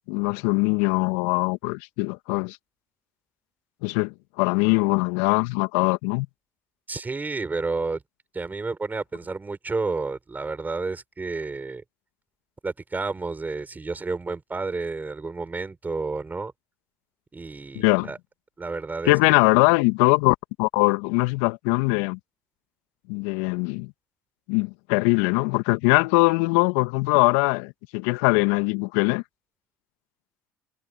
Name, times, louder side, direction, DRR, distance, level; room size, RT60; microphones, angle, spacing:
voice 1, 0.1-2.6 3.8-6.3 17.7-18.1 19.0-22.2 23.1-23.9 24.5-29.2, left 28 dB, 70° left, 2.4 m, -22 dB
voice 2, 6.9-8.0 8.3-11.8 12.6-16.5 17.3-18.2 18.6-19.1, right 3 dB, 25° right, 6.6 m, -30 dB
hypercardioid pair, 60°, 8 cm